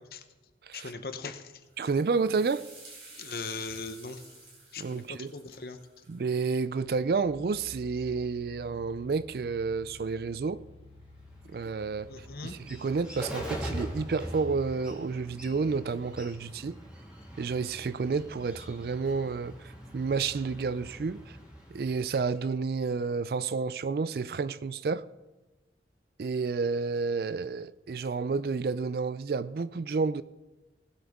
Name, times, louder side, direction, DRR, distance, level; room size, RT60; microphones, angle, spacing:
voice 1, 0.7-1.4 3.2-4.2 4.7-5.8 12.1-12.5, left 4 dB, 55° left, 0.9 m, -39 dB
sound 1, 1.7-6.6, right 3 dB, 85° right, 4.6 m, -52 dB
voice 2, 1.8-2.7 4.8-5.3 6.1-10.6 11.5-12.1 12.4-16.8 17.4-19.6 19.9-21.4 21.7-25.0 26.2-30.2, right 4 dB, 60° right, 0.4 m, -30 dB
sound 2, 5.5-5.7 6.6-14.6, equal, 30° left, 2.2 m, -52 dB
Bird, 11.1-22.6, equal, 5° right, 2.0 m, -42 dB
18.5 x 8.0 x 3.6 m
head